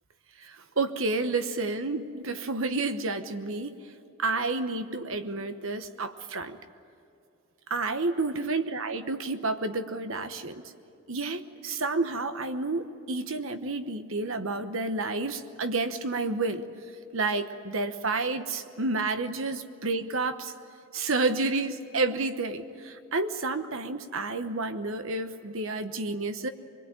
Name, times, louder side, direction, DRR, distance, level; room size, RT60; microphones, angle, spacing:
voice 1, 0.4-3.8 4.2-6.6 7.7-10.6 11.1-16.6 17.1-20.5 20.9-26.5, right 3 dB, 65° right, 9 dB, 1.1 m, -30 dB
25.0 x 22.0 x 9.0 m, 2.7 s
head